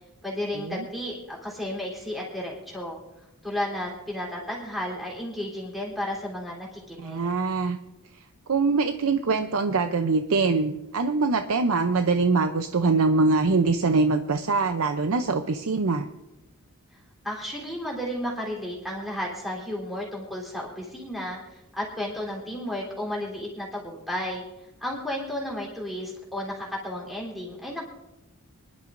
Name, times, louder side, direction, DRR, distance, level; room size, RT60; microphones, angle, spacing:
voice 1, 0.2-3.0 3.4-7.2 17.2-24.4 24.8-27.8, left 1 dB, ahead, -4 dB, 3.5 m, -33 dB
voice 2, 7.0-7.8 8.5-16.1, right 3 dB, 65° right, 7 dB, 0.6 m, -23 dB
24.5 x 11.5 x 2.6 m, 0.97 s
head